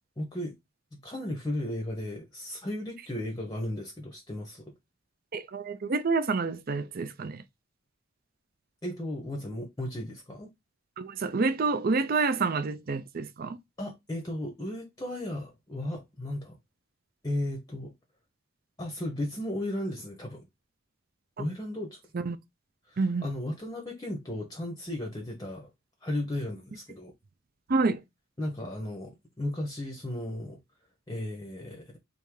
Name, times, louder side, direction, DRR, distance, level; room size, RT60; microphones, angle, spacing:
voice 1, 0.2-0.5 1.0-4.7 8.8-10.5 13.8-16.5 17.2-17.9 18.8-20.4 21.4-22.0 22.9-25.7 26.0-27.1 28.4-30.6 31.1-32.0, left 1 dB, 20° left, 0.8 m, -35 dB
voice 2, 5.3-7.4 11.0-13.6 22.1-22.4 23.0-23.3 27.7-28.0, right 4 dB, 45° right, 0.5 m, -28 dB
3.5 x 2.7 x 4.7 m
head